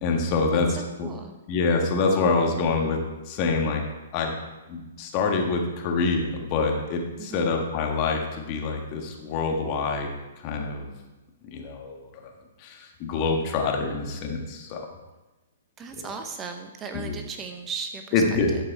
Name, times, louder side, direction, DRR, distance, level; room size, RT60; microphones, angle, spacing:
voice 1, 0.0-1.1 1.5-3.0 3.3-3.8 4.1-4.3 4.7-10.1 10.4-10.9 11.4-12.1 12.6-14.8 16.0-16.1 16.9-17.2 18.1-18.6, left 4 dB, 35° left, 2 dB, 1.6 m, -26 dB
voice 2, 0.5-1.3 7.2-7.5 15.8-18.2, right 5 dB, 20° right, 6 dB, 0.7 m, -37 dB
12.5 x 5.3 x 4.7 m, 1.1 s
figure-of-eight pair, 120°, 0 cm